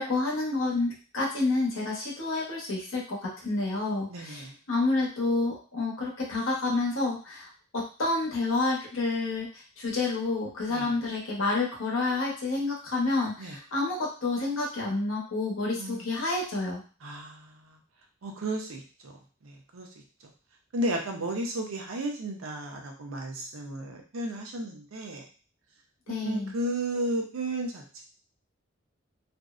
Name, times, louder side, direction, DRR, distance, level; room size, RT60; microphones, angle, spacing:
voice 1, 0.0-16.8 26.1-26.5, left 3 dB, 80° left, -3 dB, 0.9 m, -29 dB
voice 2, 4.1-4.5 10.7-10.9 13.4-13.6 15.8-16.1 17.0-17.8 18.2-19.2 19.4-19.9 20.7-25.2 26.1-28.0, right 1 dB, 90° right, 2 dB, 0.6 m, -34 dB
2.5 x 2.0 x 2.4 m, 0.36 s
head